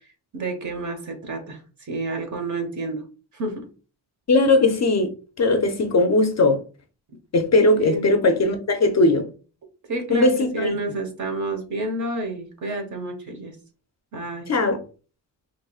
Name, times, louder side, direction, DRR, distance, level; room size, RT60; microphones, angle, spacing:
voice 1, 0.3-3.0 3.3-3.6 7.8-8.2 9.9-13.6 14.1-14.5, right 2 dB, 40° right, 1.1 m, -30 dB
voice 2, 4.3-5.1 5.4-6.6 7.3-9.3 10.1-10.8 14.5-14.8, left 2 dB, 40° left, 0.5 m, -19 dB
4.8 x 3.0 x 2.3 m
wide cardioid pair, 165°, 42 cm